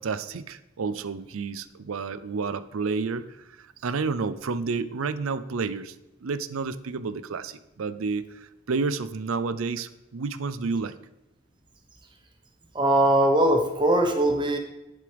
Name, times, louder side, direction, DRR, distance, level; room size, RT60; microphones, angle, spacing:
voice 1, 0.0-3.3 3.6-5.9 6.2-10.9, right 4 dB, 90° right, 14 dB, 0.5 m, -30 dB
voice 2, 12.7-14.6, right 1 dB, 20° right, 4 dB, 1.0 m, -21 dB
11.0 x 7.9 x 3.4 m, 0.96 s
head